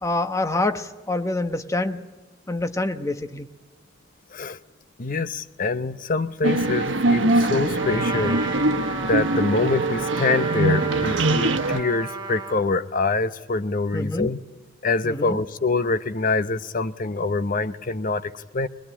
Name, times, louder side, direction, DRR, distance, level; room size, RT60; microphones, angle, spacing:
voice 1, 0.0-2.0 2.5-3.5 13.9-14.3 15.0-15.4, left 2 dB, 15° left, 1.0 m, -26 dB
voice 2, 5.0-8.4 9.1-14.4 14.8-18.7, left 3 dB, 45° left, 0.8 m, -25 dB
sound 1, 6.4-11.8, right 2 dB, 85° right, 1.1 m, -23 dB
Trumpet, 7.8-12.7, right 3 dB, 25° right, 1.5 m, -33 dB
22.0 x 21.0 x 9.9 m
head